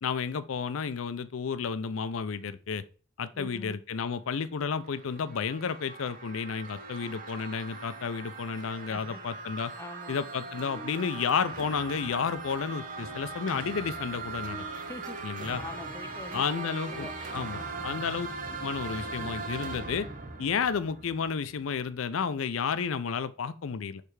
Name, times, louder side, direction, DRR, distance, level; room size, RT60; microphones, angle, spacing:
voice 1, 0.0-2.8 3.2-9.7 10.1-14.6 15.2-15.6 16.3-18.3 18.6-20.1 20.4-24.0, left 6 dB, 85° left, 0.5 m, -32 dB
voice 2, 3.3-3.8 8.9-9.2 9.8-10.2 14.7-16.4 16.9-17.8, left 2 dB, 15° left, 0.4 m, -45 dB
sound 1, 4.6-21.6, right 3 dB, 40° right, 0.9 m, -40 dB
6.6 x 3.3 x 4.7 m
head